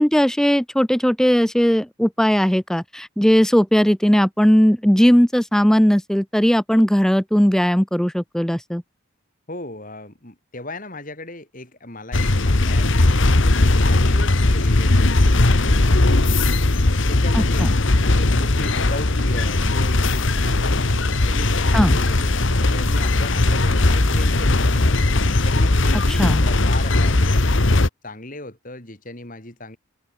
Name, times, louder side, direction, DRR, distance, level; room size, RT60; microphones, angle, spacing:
voice 1, 0.0-8.8 17.3-17.7 21.7-22.0 26.2-26.4, equal, ahead, 0.5 m, -18 dB
voice 2, 9.5-16.3 16.9-17.8 18.0-20.9 21.3-25.0 25.4-29.8, left 2 dB, 40° left, 3.7 m, -37 dB
sound 1, 12.1-27.9, left 2 dB, 60° left, 1.3 m, -18 dB
sound 2, 18.3-25.2, right 1 dB, 40° right, 2.6 m, -36 dB
head